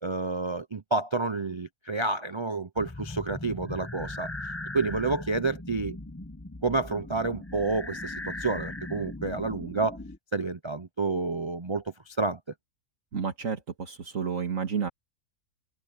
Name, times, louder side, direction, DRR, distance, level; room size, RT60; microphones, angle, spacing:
voice 1, 0.0-4.3 4.7-6.0 6.6-10.0 10.3-12.4, right 3 dB, 35° right, 0.4 m, -29 dB
sound 1, 2.8-10.2, left 2 dB, 10° left, 0.8 m, -39 dB
voice 2, 13.1-14.9, right 6 dB, 70° right, 2.2 m, -31 dB
omnidirectional pair, 1.5 m